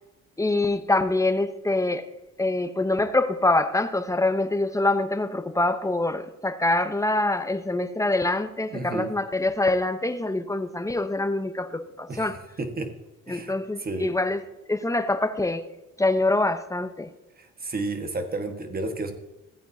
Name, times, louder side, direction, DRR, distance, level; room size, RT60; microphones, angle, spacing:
voice 1, 0.4-2.1 2.4-12.4 13.3-14.4 14.7-15.6 16.0-17.1, left 2 dB, 10° left, 9 dB, 0.8 m, -25 dB
voice 2, 8.7-9.1 12.1-12.3 12.6-12.9 13.3-13.5 13.8-14.1 17.4-19.1, right 2 dB, 30° right, 6 dB, 1.5 m, -31 dB
15.5 x 8.7 x 2.7 m, 1.0 s
cardioid pair, 90°, 30 cm